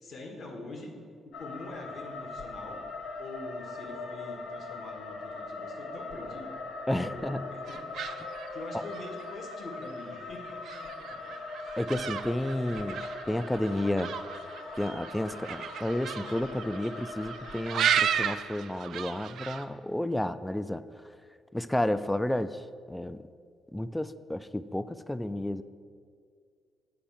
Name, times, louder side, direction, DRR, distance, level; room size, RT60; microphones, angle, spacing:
voice 1, 0.0-0.9 1.2-2.8 3.2-6.5 7.1-7.8 8.5-11.2, left 2 dB, 55° left, 3 dB, 1.4 m, -44 dB
sound 1, 1.3-18.3, left 3 dB, 80° left, 0.9 m, -41 dB
voice 2, 6.9-7.5 11.8-14.1 14.8-20.8 21.5-23.3 23.7-25.6, left 1 dB, 10° left, 13 dB, 0.3 m, -31 dB
sound 2, 7.7-19.7, right 9 dB, 70° right, 0.4 m, -35 dB
8.6 x 4.5 x 7.2 m, 2.1 s
cardioid pair, 90°, 0 cm